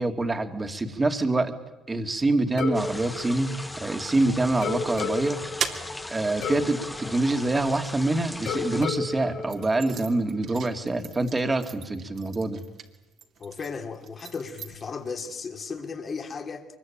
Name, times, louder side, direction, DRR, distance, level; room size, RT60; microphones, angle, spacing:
voice 1, 0.0-1.5 1.9-5.4 6.1-12.6, right 2 dB, 20° right, 2.5 m, -26 dB
sound 1, 2.6-4.2 4.6-8.0 8.5-10.4, left 5 dB, 70° left, 4.3 m, -34 dB
sound 2, 2.7-8.8, left 1 dB, 10° left, 1.3 m, -39 dB
sound 3, 4.8-8.4 9.0-15.3, right 7 dB, 55° right, 2.5 m, -40 dB
voice 2, 13.4-16.7, left 5 dB, 40° left, 2.9 m, -35 dB
24.0 x 21.5 x 9.0 m
supercardioid pair, 75°, 0 cm